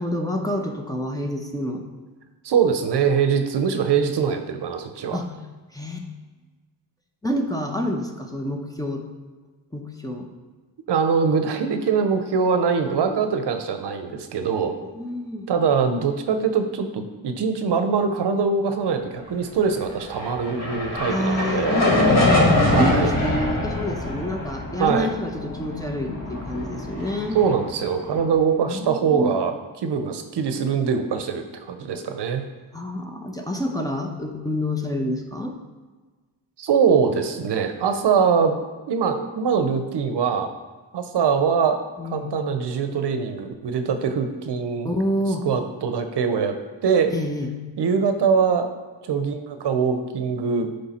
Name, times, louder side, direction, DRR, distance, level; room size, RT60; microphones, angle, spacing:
voice 1, 0.0-1.8 5.1-5.3 5.7-6.0 7.2-9.0 9.7-10.3 12.9-13.2 14.8-15.5 21.1-27.4 28.7-29.3 32.7-35.5 42.0-42.3 44.8-45.5 47.1-47.5, left 1 dB, 10° left, 2 dB, 0.8 m, -28 dB
voice 2, 2.4-5.2 10.9-14.8 15.5-21.8 22.7-23.1 24.8-25.1 27.3-32.4 36.6-38.6 38.9-40.5 40.9-41.8 42.0-44.9 45.4-46.6 46.8-47.1 47.8-48.7 49.0-50.7, right 6 dB, 70° right, 7 dB, 0.7 m, -22 dB
sound 1, 19.9-28.3, left 2 dB, 40° left, 1.9 m, -24 dB
9.7 x 3.3 x 4.3 m, 1.3 s
cardioid pair, 70°, 43 cm